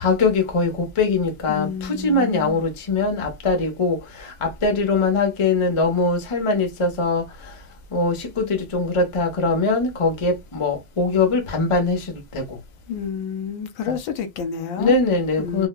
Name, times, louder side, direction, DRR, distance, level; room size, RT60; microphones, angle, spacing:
voice 1, 0.0-7.2 7.9-12.4 13.8-14.0 14.8-15.7, left 3 dB, 55° left, 0.3 m, -22 dB
voice 2, 1.5-2.6 12.9-14.9 15.4-15.7, left 7 dB, 75° left, 1.4 m, -29 dB
4.5 x 2.2 x 2.2 m
omnidirectional pair, 2.3 m